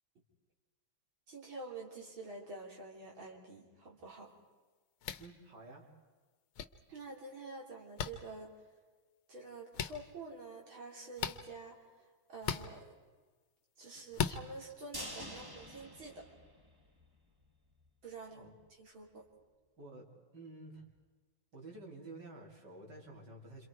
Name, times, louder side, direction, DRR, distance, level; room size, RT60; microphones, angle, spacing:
voice 1, 1.3-4.4 6.9-8.6 9.3-12.9 13.8-16.3 18.0-18.5 18.8-19.3, right 3 dB, 75° right, -1 dB, 4.3 m, -48 dB
sound 1, 5.0-5.3 6.6-6.7 8.0-8.1 9.7-9.9 11.2-11.4 12.4-12.7 14.1-14.4, left 8 dB, 90° left, 1.8 m, -35 dB
voice 2, 5.2-5.8 18.3-18.5 19.8-20.0 20.3-20.8 21.5-23.7, right 2 dB, 55° right, 0 dB, 4.0 m, -51 dB
sound 2, 14.9-17.1 17.4-17.5 17.8-17.9, equal, 10° right, 1.8 m, -47 dB
28.0 x 27.0 x 4.8 m, 1.4 s
omnidirectional pair, 2.2 m